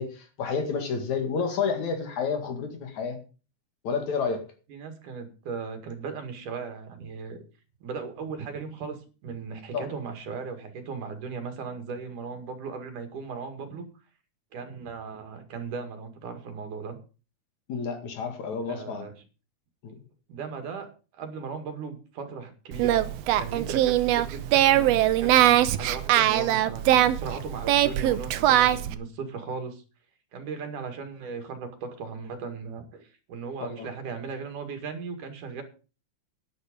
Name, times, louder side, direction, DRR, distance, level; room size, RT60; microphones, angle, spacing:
voice 1, 0.0-3.2 3.8-4.5 9.7-9.9 17.7-19.1 19.8-20.0 33.7-33.9, left 5 dB, 70° left, 6 dB, 3.4 m, -30 dB
voice 2, 4.7-7.4 7.8-9.0 9.2-13.8 14.5-17.0 18.7-19.1 20.3-20.9 21.1-29.8 30.3-35.6, right 5 dB, 90° right, 7 dB, 3.6 m, -37 dB
Singing, 22.7-28.9, right 13 dB, 70° right, 1.6 m, -22 dB
11.0 x 10.0 x 5.2 m, 0.34 s
omnidirectional pair, 3.5 m